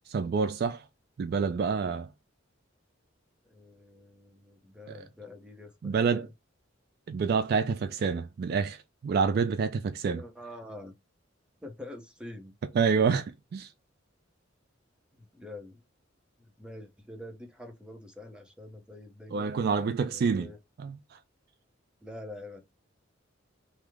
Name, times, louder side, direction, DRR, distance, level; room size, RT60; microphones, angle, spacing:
voice 1, 0.1-0.8 1.2-2.1 4.9-5.0 5.8-6.3 7.1-10.2 12.7-13.7 19.3-20.5 20.8-21.2, right 5 dB, 55° right, 0.3 m, -28 dB
voice 2, 3.5-6.3 10.2-10.9 11.6-12.6 15.1-15.8 16.4-19.6 20.0-20.6 22.0-22.6, left 1 dB, 5° right, 0.7 m, -46 dB
3.1 x 2.0 x 3.4 m
head